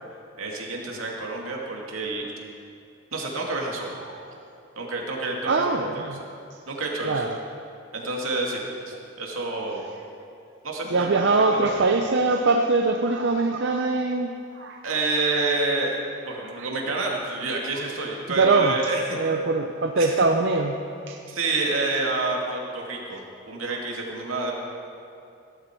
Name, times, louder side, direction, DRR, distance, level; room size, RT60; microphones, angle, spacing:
voice 1, 0.4-2.3 3.1-3.9 4.8-6.1 6.7-7.2 7.9-8.6 8.9-9.8 10.6-11.2 11.5-11.7 14.8-19.2 20.0-20.1 21.3-23.2 23.5-24.5, right 3 dB, 80° right, -1 dB, 2.4 m, -28 dB
voice 2, 5.4-6.2 7.0-7.4 10.9-15.0 18.4-18.8 19.2-20.8 21.1-21.2, right 3 dB, 55° right, 3 dB, 0.6 m, -23 dB
16.5 x 13.5 x 4.6 m, 2.6 s
head